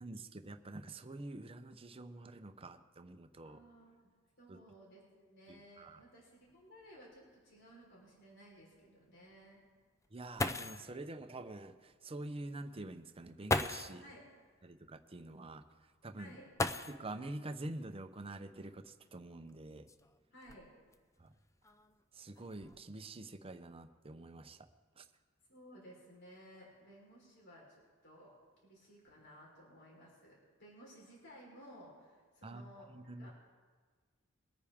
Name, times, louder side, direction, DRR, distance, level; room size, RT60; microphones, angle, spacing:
voice 1, 0.0-3.6 4.5-4.6 5.8-6.0 10.1-14.0 14.6-15.6 16.0-16.3 16.9-19.9 21.2-21.3 22.2-24.7 25.0-25.1 32.4-32.6 32.9-33.3, right 2 dB, 25° right, 9 dB, 0.7 m, -46 dB
voice 2, 3.4-4.1 4.4-9.6 14.0-14.2 16.1-16.5 20.3-20.7 25.5-28.3 28.6-33.3, equal, 60° left, -4 dB, 4.2 m, -57 dB
sound 1, 6.5-6.6 7.0-7.1 7.7-7.8 10.0-10.1 10.4-10.9 12.2-12.3 13.4-14.0 16.5-17.3 18.7-18.8 19.5-20.9 21.6-22.0 22.4-22.8, left 2 dB, 15° left, 0.4 m, -37 dB
22.5 x 9.6 x 3.6 m, 1.5 s
head